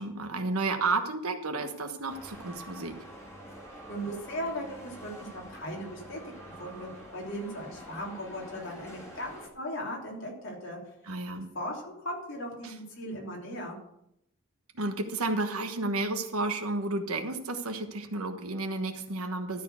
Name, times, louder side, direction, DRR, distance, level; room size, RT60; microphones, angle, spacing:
voice 1, 0.0-3.0 11.1-11.5 12.6-12.7 14.7-19.6, right 2 dB, 85° right, 6 dB, 1.3 m, -32 dB
sound 1, 2.1-9.5, right 1 dB, 10° left, 2.2 m, -47 dB
voice 2, 3.7-10.8 11.3-13.8, equal, 60° left, -2 dB, 3.1 m, -38 dB
12.5 x 4.6 x 8.2 m, 0.78 s
head